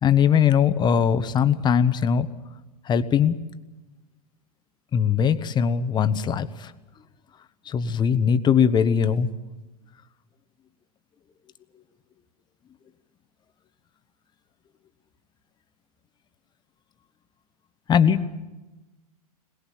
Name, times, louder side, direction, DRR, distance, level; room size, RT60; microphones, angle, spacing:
voice 1, 0.0-2.3 2.9-3.3 4.9-6.7 7.7-9.3 17.9-18.3, left 7 dB, 20° left, 12 dB, 1.3 m, -20 dB
21.5 x 21.0 x 7.4 m, 1.1 s
figure-of-eight pair, 100°, 20 cm